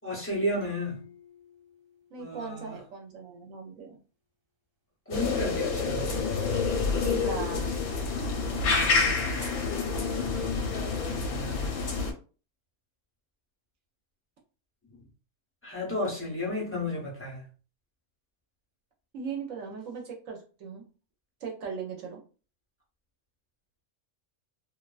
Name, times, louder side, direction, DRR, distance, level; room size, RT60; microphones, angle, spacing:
voice 1, 0.0-1.1 2.2-2.7 5.1-6.1 8.6-9.2 10.7-11.8 15.6-17.4, left 1 dB, 15° left, 0.4 m, -33 dB
sound 1, 0.6-3.2, left 6 dB, 45° right, 1.0 m, -54 dB
voice 2, 2.1-4.0 7.1-7.7 19.1-20.8 21.4-22.2, right 5 dB, 70° right, 0.9 m, -38 dB
sound 2, 5.1-12.1, left 4 dB, 85° left, 1.1 m, -28 dB
2.5 x 2.2 x 2.3 m
omnidirectional pair, 1.5 m